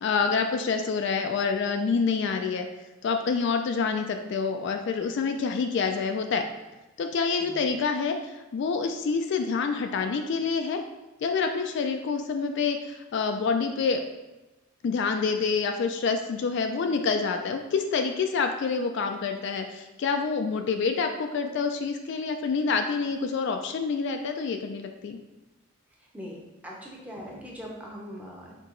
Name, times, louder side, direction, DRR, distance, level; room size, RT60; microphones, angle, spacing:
voice 1, 0.0-2.7 3.0-6.4 7.0-10.8 11.2-14.0 14.8-25.2, left 5 dB, 55° left, 5 dB, 0.3 m, -27 dB
voice 2, 26.1-28.5, equal, 5° right, -3 dB, 0.7 m, -41 dB
4.6 x 2.9 x 3.8 m, 1.1 s
head